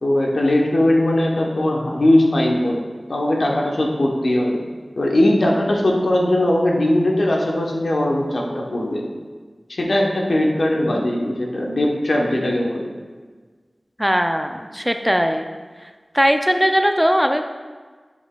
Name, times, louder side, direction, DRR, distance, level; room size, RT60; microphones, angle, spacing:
voice 1, 0.0-2.8 3.1-4.6 5.0-9.0 9.7-12.9, left 1 dB, 80° left, 0 dB, 0.9 m, -19 dB
voice 2, 14.0-15.5 16.1-17.4, equal, ahead, 6 dB, 0.4 m, -19 dB
7.1 x 7.1 x 2.2 m, 1.4 s
wide cardioid pair, 65°, 0 cm